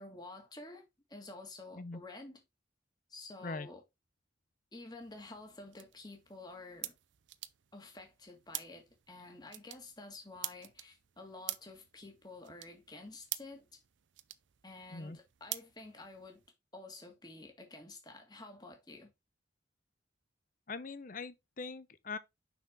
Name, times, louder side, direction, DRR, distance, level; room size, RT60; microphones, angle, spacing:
voice 1, 0.0-2.4 3.1-3.9 4.7-6.9 7.7-13.8 14.6-16.4 16.7-19.1, left 2 dB, 20° left, 1.8 m, -50 dB
sound 1, 5.0-16.5, right 16 dB, 80° right, 0.6 m, -48 dB
voice 2, 20.7-22.2, left 4 dB, 45° left, 0.7 m, -42 dB
6.1 x 5.8 x 3.7 m
head